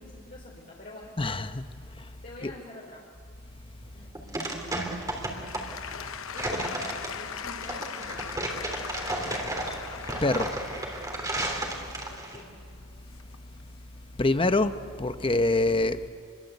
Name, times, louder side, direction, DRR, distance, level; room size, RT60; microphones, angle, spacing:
voice 1, 0.0-1.2 2.2-3.1 3.9-5.5 5.9-8.4 12.0-12.6, left 1 dB, 45° left, -4 dB, 4.0 m, -47 dB
voice 2, 1.2-1.6 2.4-2.5 10.2-10.5 14.2-16.1, left 2 dB, 25° left, 10 dB, 0.9 m, -25 dB
sound 1, 3.8-12.4, right 1 dB, 15° right, 3.4 m, -33 dB
Applause / Crowd, 4.7-13.6 14.2-14.3, left 7 dB, 75° left, 0.9 m, -40 dB
28.0 x 22.5 x 8.2 m, 2.2 s
head